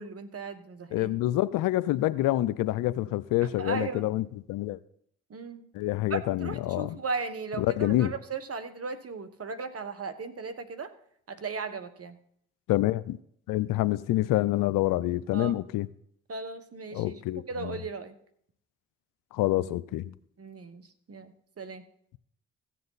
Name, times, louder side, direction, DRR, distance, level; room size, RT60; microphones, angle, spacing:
voice 1, 0.0-1.1 3.4-4.1 5.3-5.6 6.1-10.9 11.3-12.2 15.3-15.6 16.3-17.2 17.5-18.1 20.4-21.8, right 4 dB, 45° right, 1.3 m, -37 dB
voice 2, 0.9-4.8 5.7-7.0 7.6-8.1 12.7-13.2 13.5-15.9 16.9-17.8 19.3-20.1, left 15 dB, 80° left, 0.5 m, -27 dB
15.5 x 7.5 x 4.0 m
supercardioid pair, 45°, 33 cm